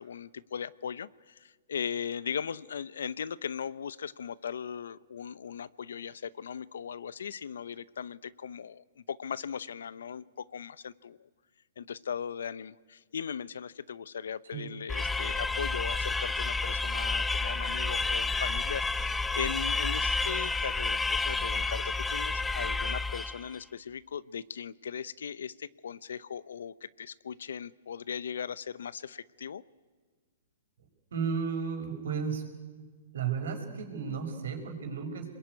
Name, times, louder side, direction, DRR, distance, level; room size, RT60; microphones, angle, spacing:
voice 1, 0.0-11.3 11.8-29.6, left 7 dB, 80° left, 19 dB, 0.7 m, -38 dB
sound 1, 14.9-23.5, left 3 dB, 10° left, 0.7 m, -30 dB
voice 2, 31.1-32.5 33.1-35.3, right 6 dB, 75° right, 4 dB, 5.4 m, -33 dB
26.0 x 21.0 x 9.5 m, 1.5 s
hypercardioid pair, 135°, 0 cm